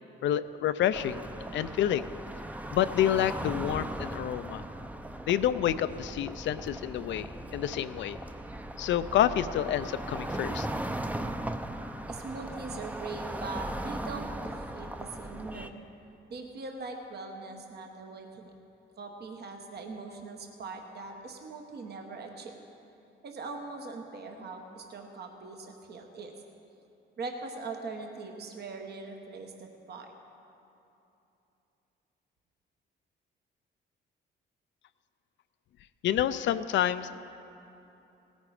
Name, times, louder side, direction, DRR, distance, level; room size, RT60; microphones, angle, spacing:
voice 1, 0.2-2.1 2.7-4.6 5.3-8.2 8.8-10.7 36.0-37.3, left 11 dB, 70° left, 12 dB, 0.5 m, -28 dB
sound 1, 0.9-15.7, right 1 dB, 10° right, 0.6 m, -38 dB
voice 2, 12.1-15.7 16.3-18.5 19.0-22.5 23.2-26.3 27.2-30.1, right 3 dB, 55° right, 3 dB, 1.2 m, -41 dB
17.5 x 9.4 x 4.9 m, 2.9 s
cardioid pair, 90°, 20 cm